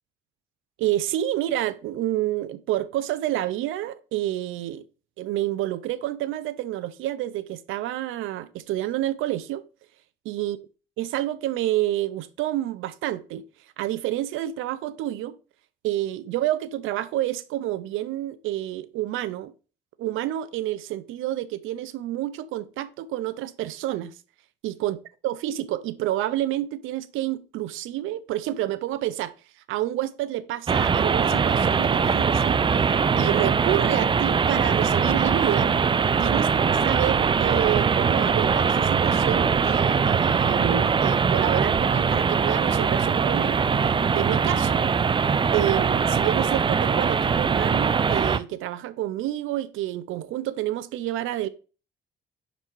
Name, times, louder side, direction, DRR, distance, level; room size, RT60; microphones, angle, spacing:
voice 1, 0.8-4.8 5.2-9.6 10.3-10.6 11.0-13.4 13.8-15.4 15.8-19.5 20.0-24.1 24.6-25.0 25.2-29.3 29.7-32.8 33.2-35.7 36.2-43.6 44.1-44.8 45.5-51.5, right 14 dB, 90° right, 0.5 m, -29 dB
sound 1, 30.7-48.4, right 6 dB, 25° right, 0.4 m, -22 dB
5.4 x 4.0 x 4.4 m
cardioid pair, 90°, 20 cm